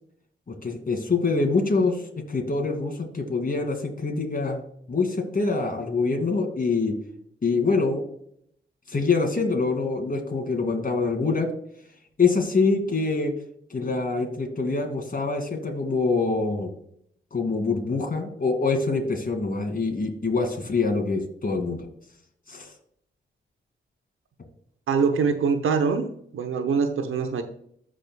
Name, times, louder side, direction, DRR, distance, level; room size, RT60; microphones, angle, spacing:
voice 1, 0.5-2.0 2.3-4.6 4.9-6.9 7.4-8.0 8.9-11.5 12.2-13.3 13.7-16.7 17.3-21.9 22.5-22.7, left 4 dB, 45° left, 3 dB, 2.4 m, -25 dB
voice 2, 24.9-27.4, right 5 dB, 80° right, 7 dB, 0.9 m, -24 dB
15.0 x 5.0 x 2.3 m, 0.68 s
supercardioid pair, 45°, 21 cm